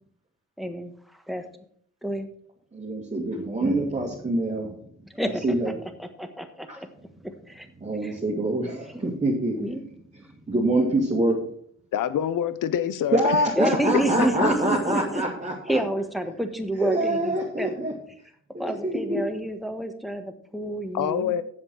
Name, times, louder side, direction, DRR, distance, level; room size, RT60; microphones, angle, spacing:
voice 1, 0.6-1.4 2.0-2.3 5.1-5.7 6.0-6.9 7.2-7.7 8.0-8.2 8.9-9.1 9.5-9.8 13.6-15.2 15.7-17.7 18.6-21.4, right 1 dB, ahead, 7 dB, 1.3 m, -29 dB
voice 2, 2.7-4.7 5.4-5.7 6.7-6.8 7.8-9.6 10.5-11.4 13.1-15.8 16.8-17.9 18.5-19.2, right 1 dB, 20° right, -3 dB, 2.1 m, -25 dB
voice 3, 11.9-13.4 14.2-14.5 20.9-21.4, left 10 dB, 80° left, 14 dB, 0.8 m, -26 dB
7.8 x 7.6 x 6.2 m, 0.62 s
cardioid pair, 110°, 31 cm